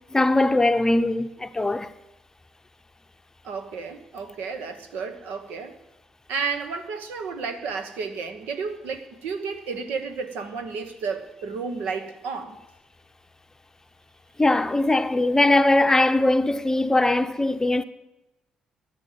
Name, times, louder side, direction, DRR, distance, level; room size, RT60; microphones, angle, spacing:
voice 1, 0.1-1.9 14.4-17.8, left 2 dB, 20° left, 0.8 m, -20 dB
voice 2, 3.4-5.7 6.3-12.6, right 5 dB, 65° right, 1.3 m, -32 dB
12.5 x 11.5 x 7.5 m
figure-of-eight pair, 45°, 3 cm